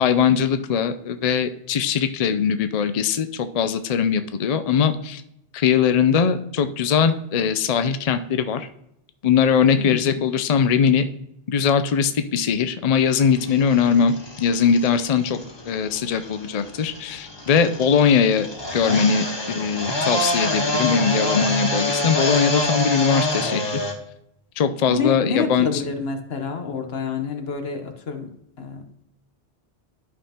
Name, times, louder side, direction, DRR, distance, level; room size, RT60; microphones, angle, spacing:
voice 1, 0.0-5.2 5.5-8.7 9.2-11.0 11.5-15.4 15.7-18.5 18.7-23.8 24.6-25.8, left 7 dB, 50° left, 10 dB, 0.5 m, -21 dB
voice 2, 9.8-10.2 24.9-28.3 28.6-28.8, left 5 dB, 65° left, 5 dB, 1.2 m, -28 dB
sound 1, 13.1-23.9, left 1 dB, 25° left, 1.3 m, -27 dB
12.0 x 5.5 x 2.9 m, 0.76 s
omnidirectional pair, 1.1 m